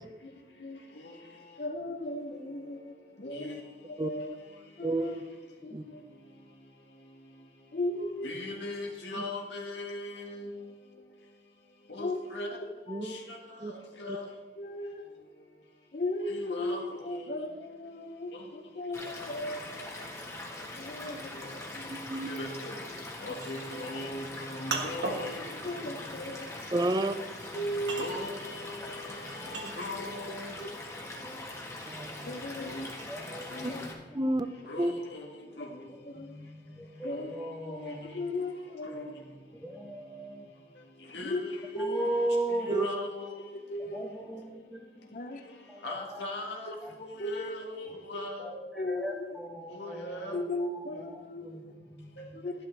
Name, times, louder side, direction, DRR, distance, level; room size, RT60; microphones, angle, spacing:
voice 1, 1.6-2.9 3.2-3.5 4.0-4.3 4.8-5.1 5.6-6.0 7.7-8.3 12.0-12.5 12.9-13.2 14.6-15.0 15.9-16.8 17.0-20.1 20.8-21.9 25.6-26.5 27.5-28.1 30.6-30.7 32.2-32.9 33.7-33.8 35.6-35.7 36.0-36.4 37.0-37.3 37.7-39.1 41.2-41.4 41.7-42.1 42.7-43.0 43.7-44.1 45.1-45.4 47.0-47.5 48.8-49.0 50.3-51.6 52.3-52.5, left 1 dB, 45° left, 7 dB, 0.8 m, -36 dB
voice 2, 3.2-3.6 8.2-10.4 12.0-12.5 13.1-13.2 14.0-14.3 16.4-16.8 22.3-22.7 23.2-24.2 24.5-25.3 28.0-28.7 29.4-30.5 32.6-32.8 33.6-33.7 34.7-35.2 35.6-35.7 37.1-37.2 37.8-37.9 41.1-41.6 42.7-43.3 45.8-46.7 47.3-48.5 49.7-50.4, left 2 dB, 75° left, -1 dB, 1.8 m, -39 dB
voice 3, 4.8-5.2 5.7-5.8 9.1-9.2 12.9-13.1 13.6-13.7 14.1-14.2 21.9-22.3 26.7-27.2 31.9-32.4 33.6-33.7 34.1-34.5 34.8-34.9 42.7-42.9, right 2 dB, 25° right, 11 dB, 0.5 m, -30 dB
Stream / Liquid, 18.9-33.9, left 2 dB, 15° left, 1.5 m, -42 dB
sound 1, 23.4-30.3 30.6-33.5, right 3 dB, 85° right, 1.7 m, -40 dB
voice 4, 33.1-34.3 35.8-38.2 39.6-40.5 41.8-42.7 43.8-45.1 45.7-46.2 46.8-46.9 47.8-48.0 48.4-51.7 52.0-52.4, right 1 dB, ahead, -4 dB, 1.0 m, -38 dB
12.5 x 11.5 x 3.4 m, 1.2 s
head